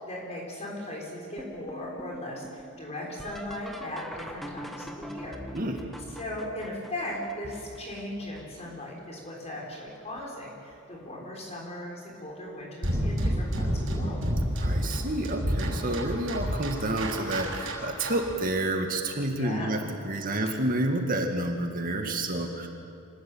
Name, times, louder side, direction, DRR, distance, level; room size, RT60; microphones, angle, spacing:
voice 1, 0.0-5.4 6.1-14.2 18.3-18.4 19.4-19.7 20.3-20.4, left 1 dB, 30° left, -3 dB, 6.2 m, -38 dB
sound 1, 1.4-9.1 9.7-10.3 10.7-11.4 12.6-12.7 13.4-13.8 15.9-16.0 18.4-18.5, equal, ahead, 1.5 m, -44 dB
sound 2, 12.8-18.3, equal, 70° right, 6.0 m, -29 dB
voice 2, 14.6-19.8 20.0-22.7, right 1 dB, 40° right, 3 dB, 2.2 m, -29 dB
26.0 x 20.0 x 8.9 m, 2.5 s
head